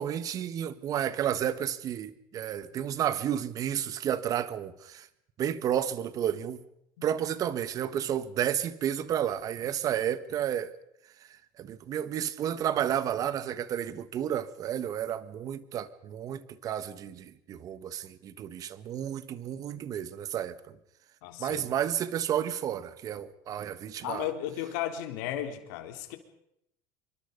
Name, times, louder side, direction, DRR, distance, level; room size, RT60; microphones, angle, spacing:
voice 1, 0.0-5.1 5.4-6.6 7.0-10.7 11.6-20.8 21.4-24.3, right 10 dB, 35° right, 1.5 m, -31 dB
voice 2, 21.2-21.7 24.0-26.2, left 11 dB, 80° left, 3.8 m, -35 dB
26.5 x 24.0 x 5.3 m
cardioid pair, 150°, 10 cm